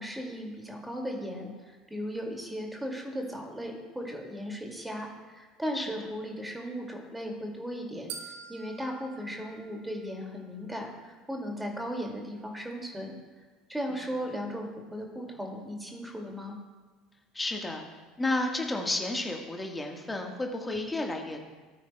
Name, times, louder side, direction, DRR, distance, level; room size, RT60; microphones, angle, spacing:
voice 1, 0.0-8.1 8.5-13.2 13.7-16.5, equal, 5° right, 1 dB, 2.3 m, -37 dB
sound 1, 8.1-10.3, right 6 dB, 60° right, 1.2 m, -45 dB
voice 2, 17.3-17.8 18.2-21.4, left 2 dB, 15° left, 2 dB, 1.5 m, -31 dB
18.0 x 9.0 x 2.3 m, 1.3 s
figure-of-eight pair, 65°, 0 cm